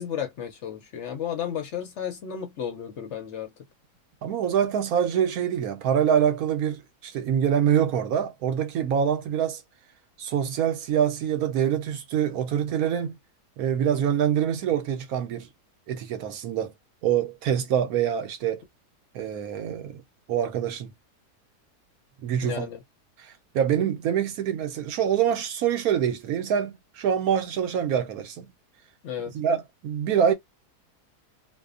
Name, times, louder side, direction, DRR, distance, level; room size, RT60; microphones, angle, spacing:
voice 1, 0.0-3.5 22.4-22.8 29.0-29.3, left 8 dB, 65° left, 0.7 m, -33 dB
voice 2, 4.2-9.6 10.2-13.2 13.6-15.5 15.9-16.7 17.0-18.6 19.1-20.0 20.3-20.9 22.2-22.7 23.2-28.5 29.3-30.3, right 9 dB, 70° right, 1.0 m, -25 dB
2.6 x 2.2 x 2.4 m
omnidirectional pair, 1.7 m